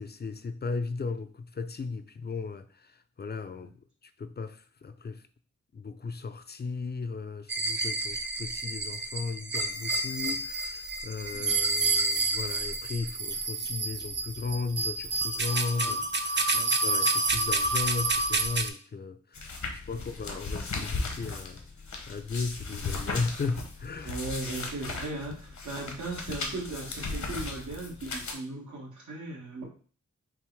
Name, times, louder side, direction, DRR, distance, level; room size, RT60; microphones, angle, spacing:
voice 1, 0.0-2.9 3.2-3.7 4.2-5.2 5.7-21.6 22.1-24.2, left 4 dB, 35° left, 0.4 m, -36 dB
sound 1, 7.5-18.7, right 3 dB, 40° right, 0.5 m, -29 dB
sound 2, 19.3-28.3, left 3 dB, 75° left, 1.0 m, -36 dB
voice 2, 19.6-20.0 24.0-29.6, right 2 dB, 85° right, 1.4 m, -38 dB
5.7 x 2.0 x 4.5 m
wide cardioid pair, 110°, 29 cm